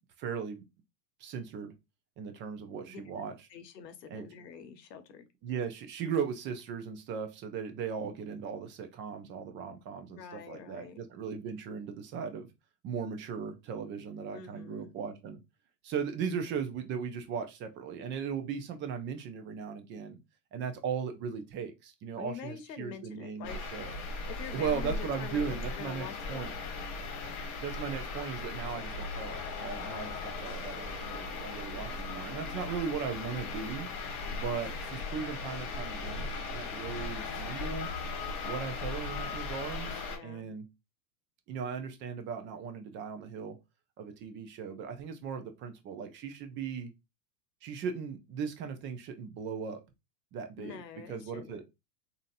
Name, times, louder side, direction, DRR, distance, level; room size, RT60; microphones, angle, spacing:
voice 1, 0.2-0.6 1.2-1.7 2.2-3.3 4.1-4.2 5.4-12.5 12.8-15.4 15.8-20.2 20.5-24.0 24.5-26.5 27.6-33.9 34.3-37.9 38.4-40.6 41.5-43.6 44.0-46.9 47.6-49.8 50.3-50.8 51.1-51.6, right 6 dB, 25° right, 0.5 m, -37 dB
voice 2, 2.9-5.3 10.1-11.0 14.3-14.9 22.1-23.6 23.9-26.5 40.1-40.5 50.6-51.6, left 7 dB, 75° left, 0.9 m, -46 dB
sound 1, 23.4-40.2, left 3 dB, 35° left, 1.1 m, -38 dB
3.7 x 2.7 x 2.6 m
hypercardioid pair, 105°, 50 cm